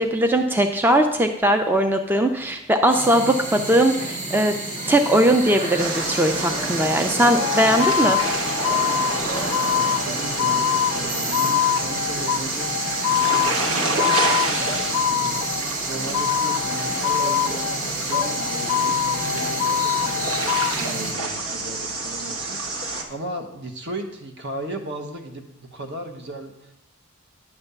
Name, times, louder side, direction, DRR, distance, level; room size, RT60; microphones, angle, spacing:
voice 1, 0.0-4.5 4.9-8.2, right 1 dB, 10° right, 5 dB, 0.4 m, -19 dB
sound 1, 2.9-21.1, right 1 dB, 40° right, 1.3 m, -31 dB
sound 2, 5.8-23.0, right 3 dB, 85° right, 1.1 m, -28 dB
sound 3, 7.4-15.7 16.1-17.8 18.1-20.7, left 10 dB, 85° left, 0.4 m, -24 dB
voice 2, 9.5-25.4 25.7-26.7, right 1 dB, 55° right, 4 dB, 1.0 m, -36 dB
9.8 x 3.4 x 6.8 m, 0.85 s
head